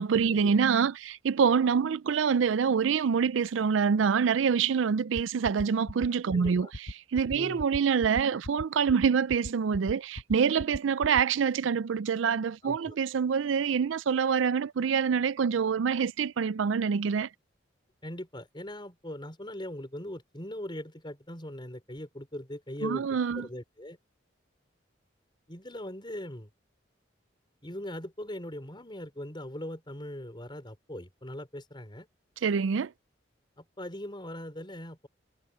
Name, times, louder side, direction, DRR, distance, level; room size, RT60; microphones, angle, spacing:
voice 1, 0.0-6.7 7.1-17.3 22.8-23.5 32.4-32.9, right 6 dB, 85° right, 0.4 m, -26 dB
sound 1, 5.1-11.2, left 1 dB, 85° left, 1.4 m, -37 dB
voice 2, 6.3-6.7 7.3-7.7 12.6-13.0 18.0-24.0 25.5-26.5 27.6-32.1 33.6-35.1, left 1 dB, 25° left, 5.2 m, -40 dB
head